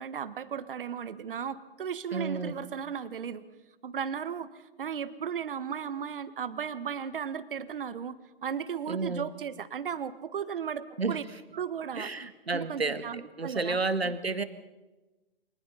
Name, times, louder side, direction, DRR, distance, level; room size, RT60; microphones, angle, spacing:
voice 1, 0.0-3.4 3.8-8.2 8.4-11.2 11.5-13.8 14.0-14.1, right 7 dB, 60° right, 14 dB, 1.5 m, -36 dB
voice 2, 2.1-2.5 8.9-9.3 11.0-11.2 12.0-14.4, right 3 dB, 85° right, 12 dB, 1.7 m, -31 dB
29.0 x 25.0 x 4.1 m, 1.1 s
figure-of-eight pair, 120°, 30 cm